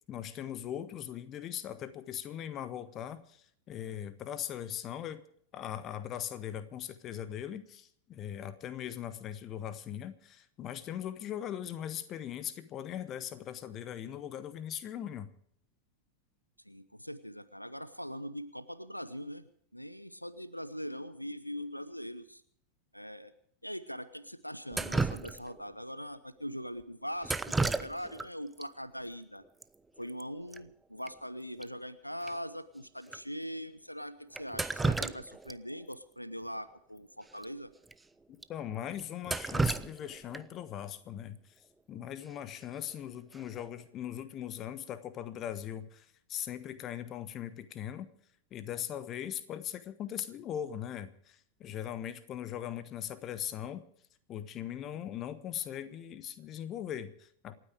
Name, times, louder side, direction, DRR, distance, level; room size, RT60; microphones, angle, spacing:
voice 1, 0.1-5.2 5.5-15.3 38.5-41.4 41.9-48.1 48.5-53.8 54.3-57.6, left 10 dB, 30° left, 13 dB, 1.2 m, -40 dB
voice 2, 16.6-22.4 22.9-23.3 23.6-29.4 30.0-37.7, equal, 90° left, 15 dB, 0.7 m, -42 dB
Drip, 24.7-25.7 27.2-28.3 28.6-28.7 29.6-29.7 30.0-30.2 30.5-30.6 31.1-31.2 31.6-31.7 32.3-32.4 33.1-33.2 34.3-35.6 35.9-36.0 37.3-37.4 37.9-38.0 38.4-38.5 39.0-40.6 42.6-42.9 43.3-43.7, right 3 dB, 10° right, 0.6 m, -33 dB
27.5 x 9.4 x 4.9 m, 0.62 s
figure-of-eight pair, 90°, 0 cm